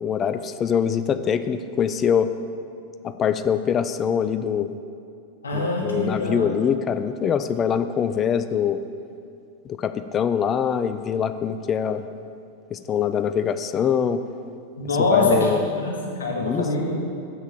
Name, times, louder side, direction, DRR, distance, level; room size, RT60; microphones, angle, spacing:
voice 1, 0.0-2.3 3.0-4.8 5.5-8.8 9.6-12.0 12.7-14.2 15.1-15.6 16.4-16.7, left 8 dB, 25° left, 11 dB, 0.4 m, -24 dB
voice 2, 5.4-6.4 14.8-16.9, left 3 dB, 70° left, -1 dB, 1.6 m, -23 dB
7.1 x 6.2 x 7.0 m, 2.5 s
figure-of-eight pair, 90°, 0 cm